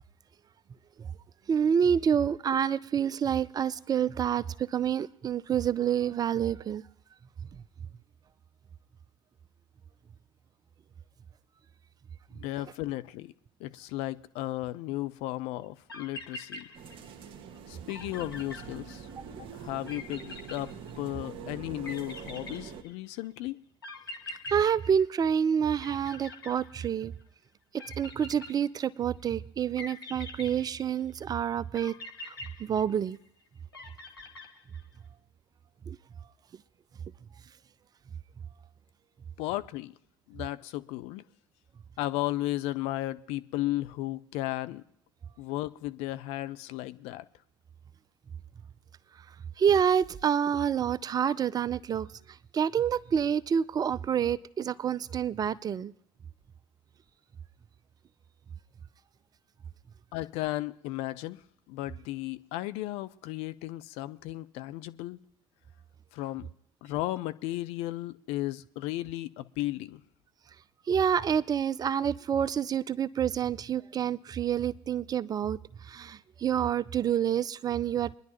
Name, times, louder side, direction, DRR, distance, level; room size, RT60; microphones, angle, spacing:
voice 1, 1.5-6.8 7.5-7.6 24.5-27.1 28.0-31.9 32.3-33.2 35.9-36.0 49.6-52.1 52.5-55.9 70.9-75.6 75.8-78.2, right 8 dB, 35° right, 0.5 m, -28 dB
voice 2, 12.3-13.3 13.6-16.7 17.7-19.1 19.4-23.6 39.4-39.9 40.3-41.2 42.0-44.8 45.4-47.2 60.1-61.4 61.7-65.2 66.1-66.5 66.8-70.0, left 16 dB, 60° left, 0.5 m, -35 dB
sound 1, 15.6-15.7 15.9-17.3 17.5-17.6 17.9-19.3 19.9-21.3 21.8-23.2 23.8-25.5 25.8-27.2 27.8-29.0 29.8-31.2 31.7-33.3 33.7-35.0, left 2 dB, 90° left, 1.3 m, -44 dB
sound 2, 16.7-22.8, right 6 dB, 50° right, 1.3 m, -44 dB
24.5 x 10.5 x 3.0 m
figure-of-eight pair, 60°, 12 cm